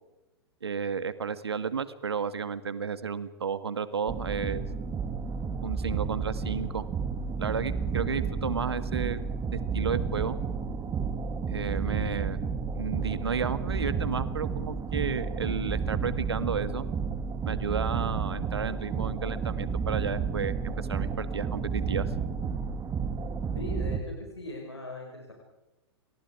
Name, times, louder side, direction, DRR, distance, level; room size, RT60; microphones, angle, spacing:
voice 1, 0.6-4.6 5.6-6.8 7.4-9.2 9.5-10.4 11.5-12.4 12.7-16.9 17.5-22.1, right 6 dB, 75° right, 12 dB, 2.0 m, -32 dB
sound 1, 4.1-24.0, right 5 dB, 20° right, 2.5 m, -31 dB
voice 2, 23.5-25.3, left 1 dB, 85° left, 0 dB, 5.8 m, -39 dB
29.5 x 28.0 x 4.9 m, 1.1 s
figure-of-eight pair, 105°, 14 cm